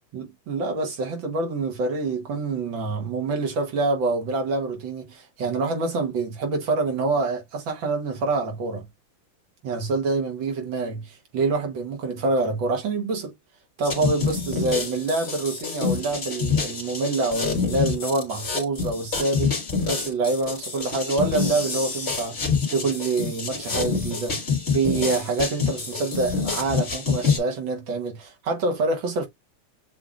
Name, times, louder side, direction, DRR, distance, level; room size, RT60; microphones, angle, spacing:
voice 1, 0.1-8.9 9.6-13.3 13.8-19.5 19.9-24.4 24.7-29.3, right 3 dB, 65° right, 1.8 m, -26 dB
sound 1, 13.8-27.4, left 5 dB, 30° left, 1.8 m, -27 dB
7.2 x 2.5 x 2.4 m
omnidirectional pair, 2.4 m